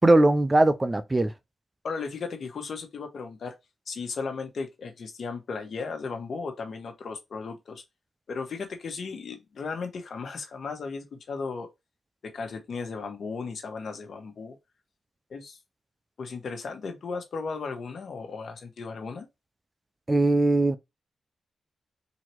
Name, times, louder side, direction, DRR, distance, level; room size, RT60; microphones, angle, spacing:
voice 1, 0.0-1.3 20.1-20.8, right 2 dB, 25° right, 0.6 m, -20 dB
voice 2, 1.8-3.5 3.9-7.8 8.3-11.7 12.2-14.6 15.3-15.6 16.2-19.3, left 4 dB, 70° left, 1.3 m, -35 dB
4.0 x 2.9 x 4.5 m
cardioid pair, 65°, 0 cm